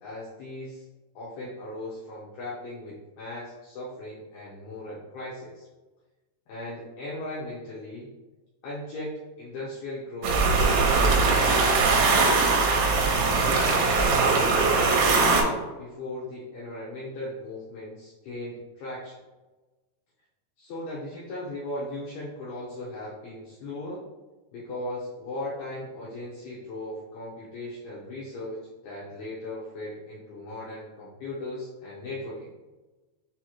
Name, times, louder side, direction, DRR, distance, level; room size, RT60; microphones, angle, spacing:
voice 1, 0.0-0.8 1.2-5.7 6.5-8.1 8.6-12.6 13.4-14.2 14.7-19.2 20.6-24.0 24.5-32.5, left 1 dB, 90° left, -7 dB, 2.1 m, -37 dB
sound 1, 10.2-15.4, right 4 dB, 85° right, 2.9 m, -21 dB
7.1 x 2.4 x 3.0 m, 1.2 s
omnidirectional pair, 5.6 m